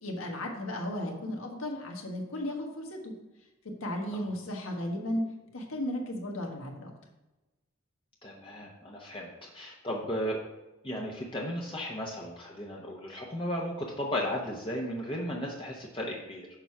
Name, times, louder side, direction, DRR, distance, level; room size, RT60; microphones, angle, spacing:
voice 1, 0.0-3.1 3.8-5.2 5.5-6.9, left 1 dB, 80° left, 1 dB, 1.4 m, -35 dB
voice 2, 8.2-10.4 10.8-16.5, equal, 25° left, -2 dB, 0.8 m, -35 dB
6.7 x 4.8 x 5.7 m, 1.0 s
head